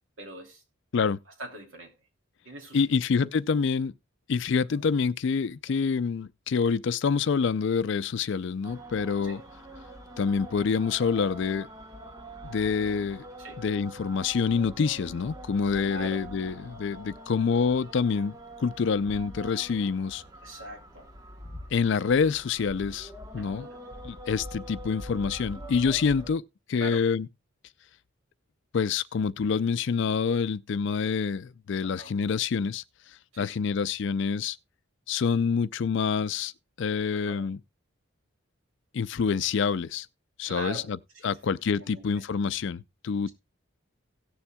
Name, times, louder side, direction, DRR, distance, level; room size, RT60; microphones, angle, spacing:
voice 1, 0.2-0.6 1.4-1.9 2.4-3.3 4.7-4.8 5.7-5.9 9.2-9.4 13.4-13.6 15.8-16.2 20.4-21.1 23.4-23.8 26.8-27.0 31.0-31.1 31.8-32.1 33.3-33.5 37.1-37.5 40.5-40.9 41.1-42.3, right 1 dB, 70° right, 2.9 m, -43 dB
voice 2, 2.7-3.9 4.3-9.4 10.2-11.7 12.4-13.2 13.6-18.3 18.6-20.2 21.7-23.7 24.0-26.4 26.7-27.3 28.7-32.8 33.4-34.6 35.1-36.5 36.8-37.6 38.9-40.1 40.4-40.8 41.2-43.3, left 5 dB, 60° left, 0.4 m, -27 dB
sound 1, 8.6-26.3, right 1 dB, 20° right, 1.0 m, -44 dB
17.5 x 7.0 x 2.2 m
head